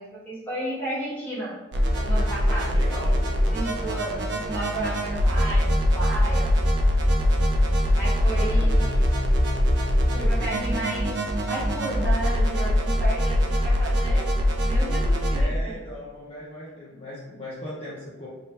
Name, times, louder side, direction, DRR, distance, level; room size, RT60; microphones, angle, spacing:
voice 1, 0.0-1.5 1.9-2.8 3.5-6.5 7.9-9.5 10.1-11.1 11.5-12.7 13.0-14.2 14.6-15.8, right 1 dB, 10° left, -8 dB, 1.2 m, -33 dB
sound 1, 1.7-15.4, equal, 60° right, 0.6 m, -22 dB
voice 2, 2.6-3.2 8.3-8.8 15.3-18.3, equal, 30° left, -9 dB, 0.7 m, -38 dB
3.7 x 2.8 x 3.2 m, 1.1 s
head